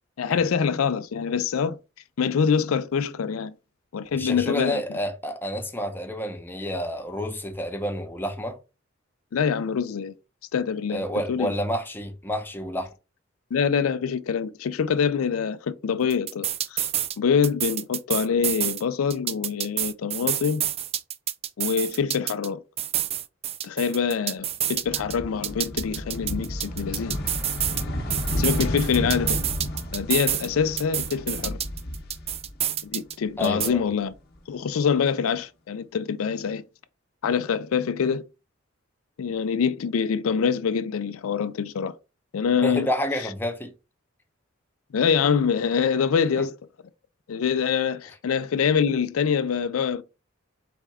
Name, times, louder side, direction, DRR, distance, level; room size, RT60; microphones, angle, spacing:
voice 1, 0.2-1.8 2.2-3.5 3.9-4.8 9.3-10.1 10.5-11.0 11.3-11.5 13.5-16.8 17.2-20.6 21.6-22.6 23.6-27.2 28.4-29.4 29.9-31.6 32.8-34.1 34.5-36.6 37.2-38.2 39.2-41.9 42.3-42.9 44.9-46.5 47.3-50.0, left 6 dB, 90° left, 0.4 m, -25 dB
voice 2, 4.1-8.6 10.9-12.9 33.4-33.8 42.6-43.7 46.4-46.5, equal, 10° left, 0.7 m, -29 dB
sound 1, 16.1-17.2 17.4-18.8 19.1-22.5 22.8-25.1 25.4-27.8 28.1-30.5 30.8-33.1 33.4-33.7, right 11 dB, 30° right, 0.3 m, -28 dB
sound 2, 24.7-32.9 33.2-34.4, left 1 dB, 50° left, 1.0 m, -32 dB
4.2 x 3.5 x 3.5 m
head